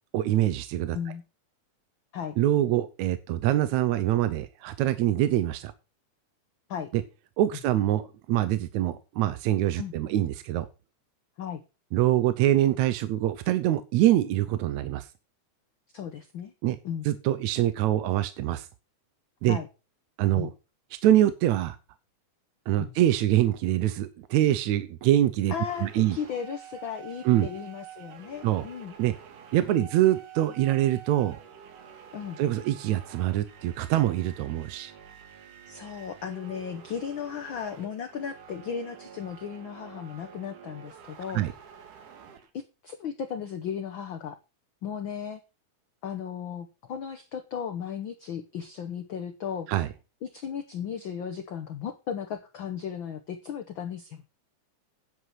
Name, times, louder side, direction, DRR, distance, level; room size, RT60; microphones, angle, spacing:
voice 1, 0.1-1.0 2.4-5.7 6.9-7.0 7.4-10.7 11.9-15.1 16.6-16.8 17.1-18.7 19.4-19.6 20.2-20.5 21.0-21.8 22.7-25.5 25.8-26.2 27.3-27.5 28.4-28.6 29.0-29.1 29.5-31.4 32.4-34.9 41.3-41.5 49.7-49.9, right 13 dB, 75° right, 12 dB, 2.0 m, -24 dB
voice 2, 15.9-16.5 16.8-17.1 19.5-19.7 20.3-20.5 22.8-22.9 25.5-28.9 29.7-29.9 32.1-32.4 35.7-41.4 42.5-44.4 44.8-45.4 46.0-49.7 50.2-54.2, left 7 dB, 75° left, 7 dB, 1.1 m, -35 dB
sound 1, 25.6-42.5, right 8 dB, 90° right, 3.2 m, -48 dB
9.7 x 8.2 x 5.7 m, 0.30 s
omnidirectional pair, 3.5 m